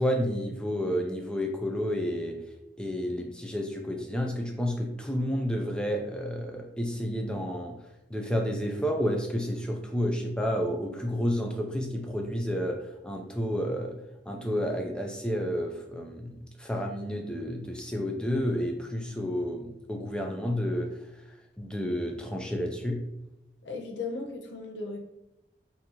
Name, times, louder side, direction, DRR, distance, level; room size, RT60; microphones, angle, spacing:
voice 1, 0.0-2.4 2.8-7.7 8.1-14.0 14.3-20.9 21.6-23.0, equal, 5° left, 2 dB, 0.4 m, -30 dB
voice 2, 23.6-25.0, left 3 dB, 85° left, 3 dB, 0.6 m, -36 dB
3.7 x 2.7 x 2.9 m, 0.89 s
head